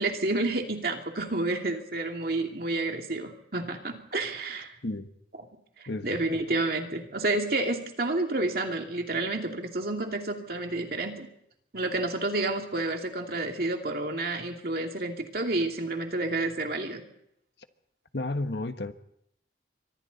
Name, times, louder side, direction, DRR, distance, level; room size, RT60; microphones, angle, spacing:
voice 1, 0.0-4.7 5.8-11.3 11.7-17.0, right 2 dB, 55° right, 2.5 m, -30 dB
voice 2, 5.9-6.4 18.1-18.9, left 2 dB, 75° left, 1.4 m, -32 dB
28.5 x 24.5 x 4.1 m
head